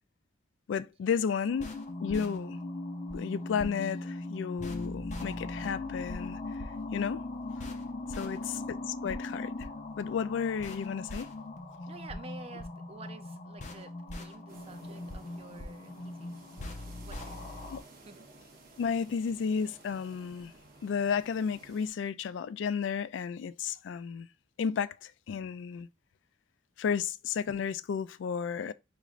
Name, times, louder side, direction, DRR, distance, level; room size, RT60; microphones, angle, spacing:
voice 1, 0.7-2.6 3.1-6.4 6.9-7.3 8.1-8.6 8.9-9.5 10.0-11.3 17.7-17.8 18.8-20.5 20.8-24.3 24.6-25.9 26.8-28.7, left 6 dB, 85° left, 0.3 m, -33 dB
sound 1, 1.5-17.8, left 2 dB, 40° left, 0.7 m, -39 dB
voice 2, 11.9-16.3 17.1-17.7 18.1-18.3, right 3 dB, 35° right, 0.5 m, -50 dB
sound 2, 14.5-21.9, right 2 dB, 55° right, 1.0 m, -54 dB
5.0 x 3.0 x 2.4 m
head